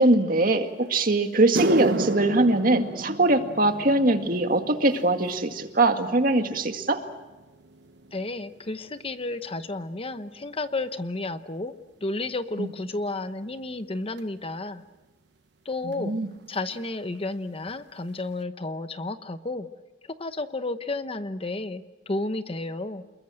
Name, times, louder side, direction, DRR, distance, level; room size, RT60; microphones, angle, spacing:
voice 1, 0.0-7.0 12.6-12.7 15.8-16.3, right 2 dB, 55° right, 6 dB, 2.0 m, -22 dB
sound 1, 0.8-0.9 1.3-9.9 10.1-10.6 11.3-11.4 14.2-14.3 15.9-16.0 16.2-16.4 16.7-17.2 17.7-17.8 18.3-18.4, right 2 dB, 75° right, 0.9 m, -34 dB
voice 2, 8.1-11.7 12.0-14.8 15.6-16.2 16.5-19.7 20.0-23.0, left 2 dB, 35° left, 10 dB, 1.0 m, -32 dB
28.0 x 22.0 x 7.7 m, 1.1 s
head